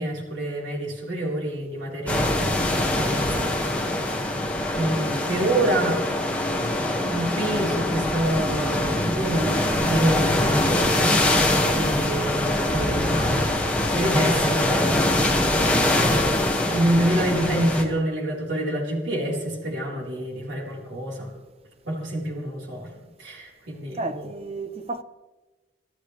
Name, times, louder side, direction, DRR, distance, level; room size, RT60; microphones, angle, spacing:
voice 1, 0.0-2.6 2.9-3.6 4.8-6.3 7.1-11.2 11.7-15.5 16.7-21.3 21.8-22.9 23.2-24.3, right 1 dB, 70° right, 4.2 m, -27 dB
sound 1, 2.1-17.8, left 1 dB, 5° left, 1.8 m, -23 dB
voice 2, 24.0-25.0, right 2 dB, 30° right, 0.7 m, -32 dB
27.5 x 13.0 x 3.3 m
head